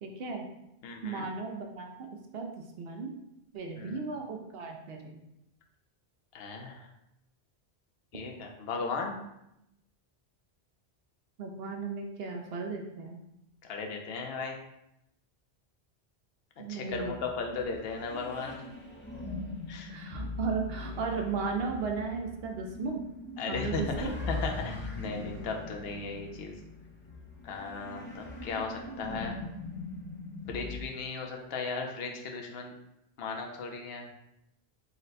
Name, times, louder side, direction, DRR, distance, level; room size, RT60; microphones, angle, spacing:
voice 1, 0.0-0.5 1.0-1.9 2.3-3.1 3.5-5.2 11.4-13.2 16.6-17.2 19.9-23.0 23.5-24.1, right 4 dB, 65° right, 2 dB, 0.8 m, -35 dB
voice 2, 0.8-1.3 3.8-4.0 6.3-6.9 8.1-9.2 13.6-14.6 16.6-18.6 19.7-19.9 23.4-26.6 27.4-29.4 30.5-32.7 33.2-34.1, left 4 dB, 65° left, 2 dB, 0.8 m, -36 dB
sound 1, 16.9-30.9, left 2 dB, 15° left, 0.5 m, -41 dB
4.0 x 2.1 x 3.9 m, 0.84 s
omnidirectional pair, 1.1 m